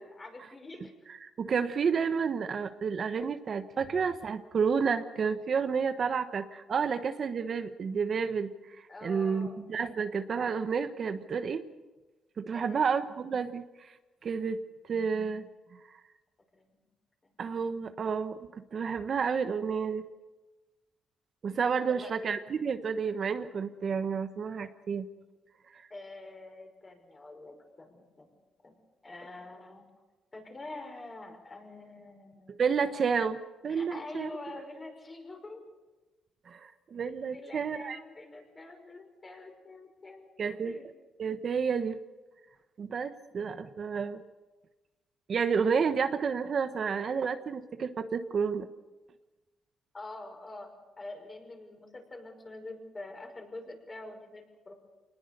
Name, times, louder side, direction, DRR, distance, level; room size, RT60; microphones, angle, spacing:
voice 1, 0.0-0.9 8.9-9.6 12.5-12.9 16.5-16.8 17.2-17.4 21.8-22.1 25.9-28.3 28.6-28.7 29.0-29.8 30.3-32.6 33.7-35.6 37.3-40.3 40.6-40.9 49.9-54.7, left 2 dB, 30° left, 3 dB, 5.7 m, -46 dB
voice 2, 1.1-11.6 12.4-13.9 14.2-14.6 14.9-15.4 17.4-20.0 21.4-25.1 25.7-25.8 32.6-34.3 36.5-38.0 40.4-40.8 41.2-42.0 42.8-44.2 45.3-48.7, right 6 dB, 50° right, 9 dB, 1.1 m, -30 dB
25.0 x 19.5 x 6.8 m, 1.2 s
cardioid pair, 90°, 0 cm